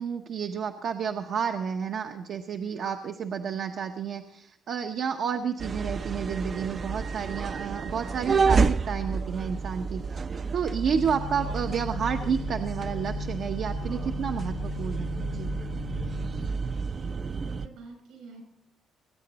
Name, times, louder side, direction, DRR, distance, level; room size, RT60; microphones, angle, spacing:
voice 1, 0.0-10.2 10.5-15.5, right 7 dB, 60° right, 4 dB, 0.8 m, -31 dB
sound 1, 5.6-17.7, right 5 dB, 40° right, 0.5 m, -30 dB
sound 2, 10.9-16.5, left 11 dB, 65° left, 0.4 m, -39 dB
voice 2, 16.3-18.4, right 4 dB, 85° right, 3 dB, 6.9 m, -49 dB
21.5 x 9.4 x 4.1 m, 0.70 s
cardioid pair, 115°, 0 cm